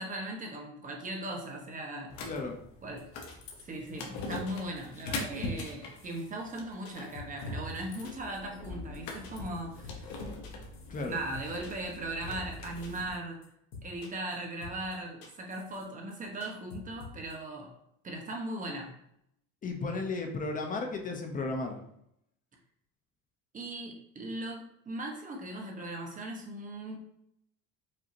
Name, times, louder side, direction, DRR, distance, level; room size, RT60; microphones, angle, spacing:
voice 1, 0.0-2.1 2.8-3.1 3.6-10.2 11.1-13.4 13.8-17.7 18.0-18.9 23.5-27.0, right 1 dB, 25° right, 1 dB, 0.9 m, -38 dB
sound 1, 2.1-13.1, left 2 dB, 70° left, 1.0 m, -42 dB
voice 2, 2.2-2.6 10.9-11.2 19.6-21.8, left 3 dB, 25° left, 4 dB, 0.7 m, -34 dB
sound 2, 3.0-3.1 3.3-3.6 3.9-4.0 4.2-4.8 5.1-5.4 5.7-6.3 6.5-7.8 8.0-8.4 8.6-8.7 8.9-9.0 9.2-9.6 9.8-10.2 10.4-11.1 11.3-12.0 12.2-12.6 12.8-13.2 13.4-13.5 13.7-14.4 14.6-14.9 15.2-15.8 16.1-16.2 16.4-17.3, left 4 dB, 90° left, 1.2 m, -47 dB
5.1 x 2.7 x 2.7 m, 0.76 s
cardioid pair, 120°, 30 cm